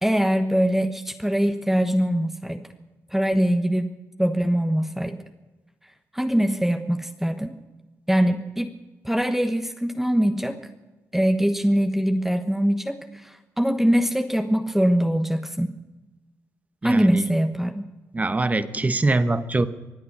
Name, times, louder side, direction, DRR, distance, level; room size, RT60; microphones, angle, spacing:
voice 1, 0.0-2.6 3.1-3.9 4.2-5.2 6.1-7.6 8.1-8.7 9.0-10.6 11.1-15.7 16.8-17.8, equal, 5° right, 6 dB, 1.1 m, -22 dB
voice 2, 16.8-17.3 18.1-19.7, right 2 dB, 25° right, 12 dB, 1.1 m, -23 dB
24.0 x 8.6 x 6.8 m, 1.1 s
cardioid pair, 75°, 6 cm